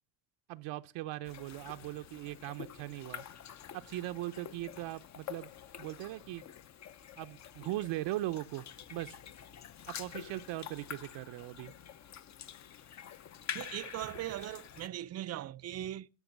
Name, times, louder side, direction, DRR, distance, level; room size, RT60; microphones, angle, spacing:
voice 1, 0.5-3.2 3.7-5.5 5.8-6.4 7.2-9.2 9.9-11.7, right 16 dB, 75° right, 0.7 m, -39 dB
sound 1, 1.3-14.9, left 9 dB, 40° left, 0.6 m, -47 dB
voice 2, 13.5-16.1, right 13 dB, 35° right, 0.4 m, -39 dB
12.0 x 6.0 x 7.2 m
cardioid pair, 130°, 43 cm